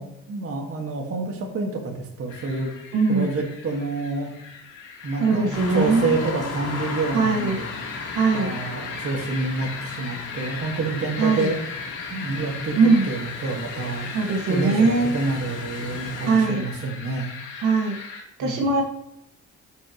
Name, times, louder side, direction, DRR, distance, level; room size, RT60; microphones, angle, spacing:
voice 1, 0.0-2.7 3.1-4.3 5.0-7.7 8.3-11.6 12.1-12.8 13.0-14.2 14.5-17.3 18.4-18.6, right 3 dB, 50° right, 1 dB, 1.9 m, -28 dB
sound 1, 2.3-18.2, left 5 dB, 90° left, 2.4 m, -37 dB
voice 2, 2.9-3.3 5.2-6.2 7.1-7.6 8.1-8.6 11.2-11.5 12.7-13.1 14.1-15.1 16.3-16.6 17.6-18.8, right 4 dB, 85° right, 1 dB, 2.0 m, -21 dB
sound 2, 5.5-16.4, left 3 dB, 55° left, 2.3 m, -37 dB
12.5 x 5.4 x 3.1 m, 0.82 s
cardioid pair, 90°, 30 cm